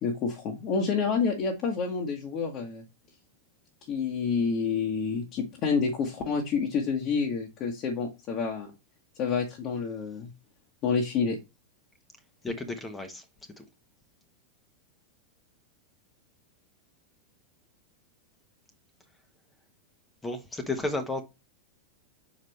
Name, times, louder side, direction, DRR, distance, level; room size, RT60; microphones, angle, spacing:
voice 1, 0.0-2.8 3.9-8.7 9.2-10.3 10.8-11.4, left 5 dB, 35° left, 1.4 m, -28 dB
voice 2, 12.4-13.2 13.6-13.7 20.2-21.2, left 2 dB, 10° left, 1.1 m, -32 dB
6.4 x 5.1 x 3.3 m
figure-of-eight pair, 90°, 0 cm